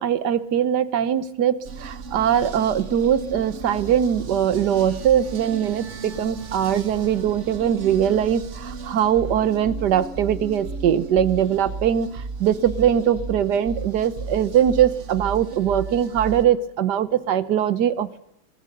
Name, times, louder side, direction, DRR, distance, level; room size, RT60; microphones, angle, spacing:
voice 1, 0.0-18.2, right 9 dB, 60° right, 15 dB, 1.4 m, -21 dB
sound 1, 1.6-16.4, right 4 dB, 40° right, 1.3 m, -35 dB
24.0 x 18.0 x 6.7 m, 0.80 s
omnidirectional pair, 2.2 m